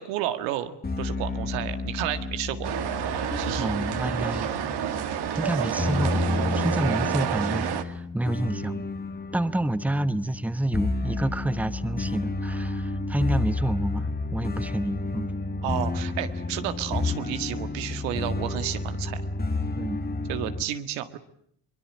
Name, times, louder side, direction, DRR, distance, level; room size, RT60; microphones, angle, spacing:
voice 1, 0.0-2.7 3.3-3.7 15.6-19.2 20.3-21.2, right 12 dB, 85° right, 1.9 m, -31 dB
sound 1, 0.8-20.6, left 3 dB, 20° left, 1.9 m, -31 dB
sound 2, 2.6-7.8, right 9 dB, 65° right, 2.3 m, -29 dB
voice 2, 3.6-4.5 5.4-8.8 9.3-15.3 19.8-20.0, right 1 dB, 5° right, 1.1 m, -29 dB
23.0 x 22.0 x 8.6 m
supercardioid pair, 70°, 43 cm